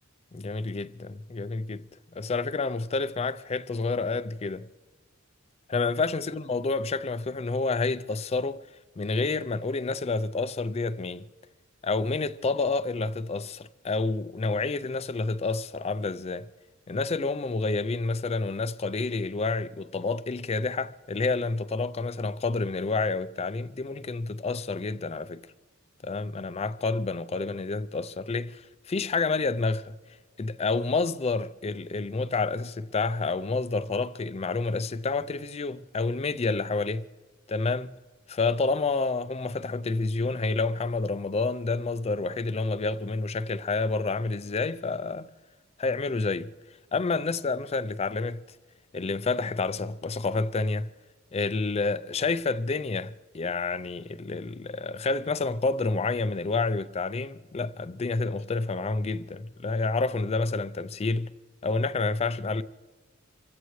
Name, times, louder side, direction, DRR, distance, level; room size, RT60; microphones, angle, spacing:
voice 1, 0.3-1.8 2.1-4.7 5.7-8.6 9.0-11.2 11.8-16.5 16.9-25.4 26.0-30.0 30.4-37.1 37.5-37.9 38.3-45.3 45.8-46.5 46.9-48.4 48.9-50.9 51.3-61.3 61.6-62.6, left 3 dB, 30° left, 0.4 m, -29 dB
26.5 x 16.0 x 3.1 m
head